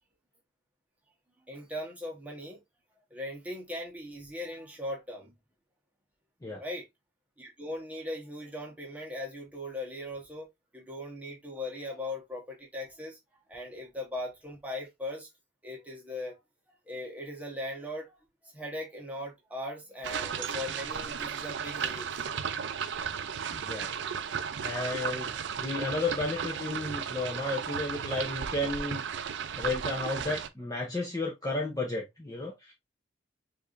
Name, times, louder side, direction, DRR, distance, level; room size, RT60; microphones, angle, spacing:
voice 1, 1.5-2.6 3.1-5.3 6.6-6.8 7.4-10.5 10.7-13.2 13.5-15.3 15.6-16.4 16.8-18.1 18.4-22.1, left 1 dB, 10° right, 1.1 m, -39 dB
sound 1, 20.0-30.5, right 7 dB, 60° right, 0.4 m, -34 dB
voice 2, 23.5-23.9 24.6-29.0 29.6-32.7, left 2 dB, 20° left, 0.6 m, -33 dB
4.6 x 2.6 x 2.4 m
head